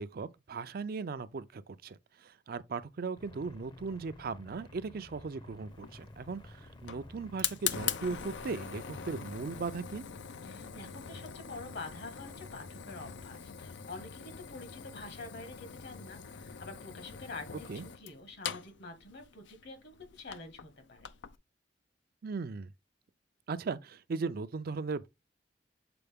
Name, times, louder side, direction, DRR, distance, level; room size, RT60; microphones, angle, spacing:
voice 1, 0.0-10.1 17.7-17.8 22.2-22.7 23.5-25.1, right 4 dB, 55° right, 0.4 m, -38 dB
sound 1, 3.2-9.6, left 1 dB, 25° left, 0.7 m, -52 dB
Fire, 5.7-21.4, left 8 dB, 85° left, 0.5 m, -42 dB
voice 2, 10.4-21.1, left 3 dB, 65° left, 1.7 m, -47 dB
6.8 x 4.2 x 3.5 m
head